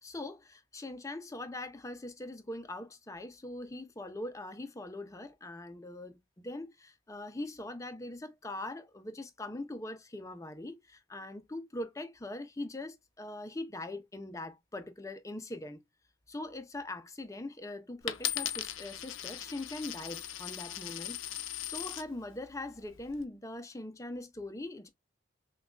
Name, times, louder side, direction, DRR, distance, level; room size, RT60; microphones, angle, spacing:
voice 1, 0.0-15.8 16.3-21.2 21.6-24.9, left 2 dB, 15° left, 0.5 m, -42 dB
Coin (dropping), 18.1-22.1 22.8-23.2, left 11 dB, 90° left, 0.5 m, -38 dB
6.0 x 2.3 x 2.3 m
head